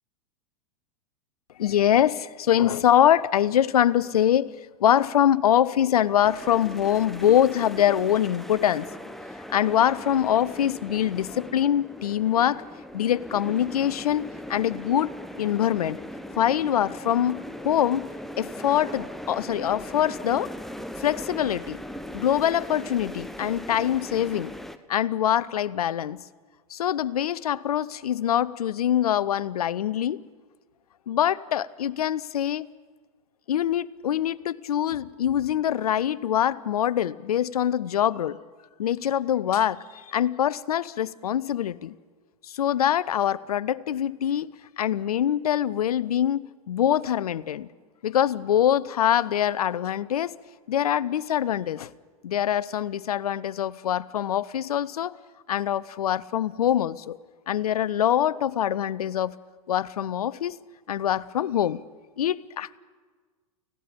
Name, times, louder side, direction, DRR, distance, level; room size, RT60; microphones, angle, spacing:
voice 1, 1.6-4.5 4.8-8.9 9.5-12.6 12.9-15.1 15.4-16.0 16.3-17.4 17.6-18.0 18.4-20.5 21.0-21.8 22.1-24.5 24.9-26.2 26.7-30.2 31.1-32.7 33.5-38.4 38.8-41.9 42.5-44.5 44.8-47.7 48.0-50.3 50.7-51.9 52.2-55.2 55.5-57.2 57.5-59.3 59.7-60.5 60.9-61.8 62.2-62.8, left 10 dB, 80° left, 0.6 m, -24 dB
sound 1, 6.2-24.8, left 1 dB, ahead, 0.9 m, -39 dB
29.5 x 16.5 x 5.2 m
hypercardioid pair, 100°, 19 cm